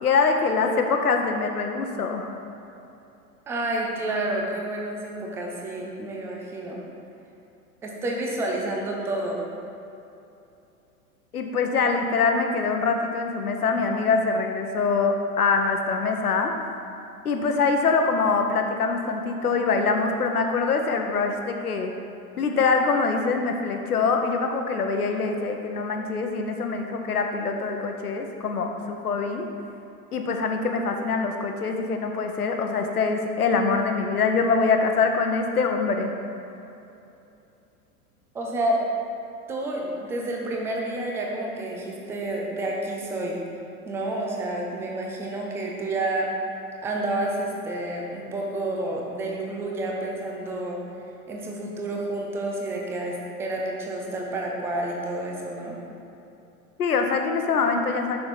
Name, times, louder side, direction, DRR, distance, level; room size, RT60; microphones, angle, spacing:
voice 1, 0.0-2.3 11.3-16.5 17.2-21.9 22.4-29.5 30.1-36.1 56.8-58.2, left 4 dB, 75° left, 4 dB, 0.9 m, -24 dB
voice 2, 3.5-6.8 7.8-9.4 38.3-38.9 39.5-43.4 43.9-46.3 46.8-50.8 51.3-55.8, right 1 dB, 5° right, -1 dB, 0.4 m, -29 dB
6.5 x 5.7 x 4.2 m, 2.8 s
figure-of-eight pair, 95°, 45 cm